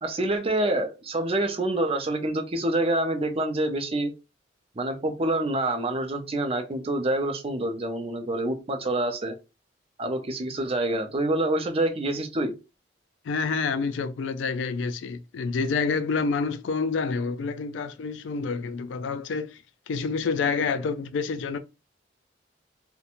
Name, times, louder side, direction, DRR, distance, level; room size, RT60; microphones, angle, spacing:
voice 1, 0.0-4.1 4.8-9.3 10.0-12.5, right 1 dB, 30° right, 0.5 m, -27 dB
voice 2, 13.2-19.6 19.9-21.6, left 4 dB, 80° left, 0.4 m, -28 dB
2.5 x 2.1 x 2.9 m
head